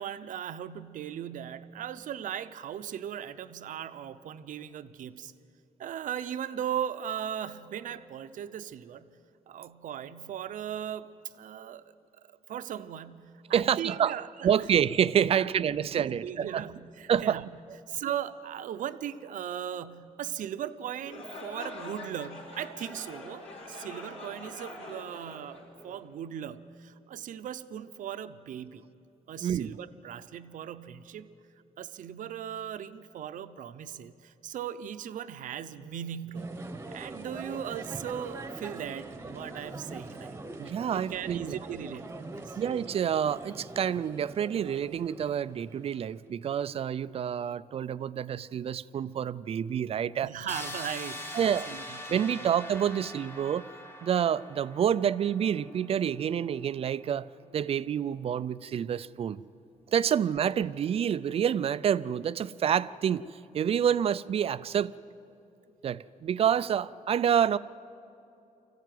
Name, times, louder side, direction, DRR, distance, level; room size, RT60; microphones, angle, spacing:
voice 1, 0.0-5.3 5.8-9.2 9.5-11.9 12.2-14.7 15.2-15.5 15.9-17.5 17.9-28.8 29.3-31.3 31.8-40.4 40.9-42.6 50.2-51.4 51.7-52.0 52.4-52.5, right 9 dB, 70° right, 11 dB, 0.8 m, -38 dB
voice 2, 13.5-14.1 14.4-16.6 17.1-17.4 29.4-29.8 40.6-41.6 42.6-50.3 51.3-51.7 52.1-53.7 54.0-57.3 57.5-59.4 59.9-63.2 63.5-64.9 65.8-67.6, right 9 dB, 45° right, 16 dB, 0.4 m, -28 dB
sound 1, 21.0-26.2, left 2 dB, 50° left, 4.3 m, -44 dB
sound 2, 36.3-46.2, right 2 dB, 15° right, 1.1 m, -43 dB
sound 3, 50.5-56.3, left 1 dB, 15° left, 1.4 m, -43 dB
24.5 x 15.0 x 9.3 m, 2.8 s
wide cardioid pair, 160°, 14 cm